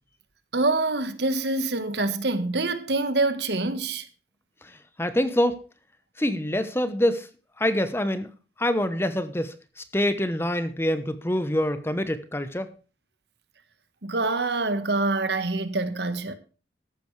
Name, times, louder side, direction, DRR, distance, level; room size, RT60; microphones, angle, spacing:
voice 1, 0.5-4.1 14.0-16.4, right 2 dB, 70° right, 1.5 m, -25 dB
voice 2, 4.6-5.6 6.2-7.3 7.6-8.3 8.6-12.7, left 1 dB, 15° left, 1.0 m, -26 dB
14.0 x 11.5 x 3.3 m
head